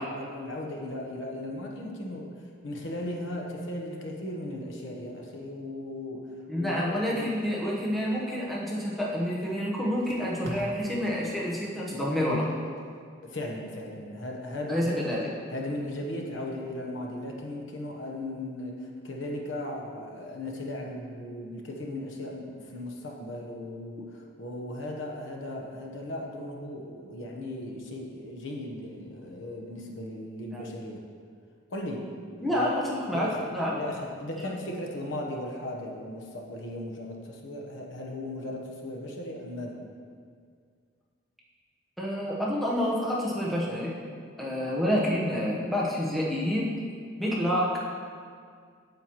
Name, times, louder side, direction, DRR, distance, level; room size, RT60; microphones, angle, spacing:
voice 1, 0.0-6.3 6.6-7.3 13.2-15.0 15.5-31.0 31.7-32.1 32.5-33.5 33.7-39.8, left 1 dB, 75° left, 0 dB, 1.0 m, -37 dB
voice 2, 6.5-12.5 14.7-15.3 30.5-30.6 32.4-33.8 34.4-34.5 42.0-43.9 44.4-46.7 47.2-47.8, equal, ahead, -6 dB, 1.0 m, -28 dB
Packing tape duct tape, 7.0-8.7 9.4-9.5 9.8-12.8 13.2-13.5, equal, 60° right, 1.4 m, -45 dB
8.8 x 7.7 x 3.0 m, 2.1 s
head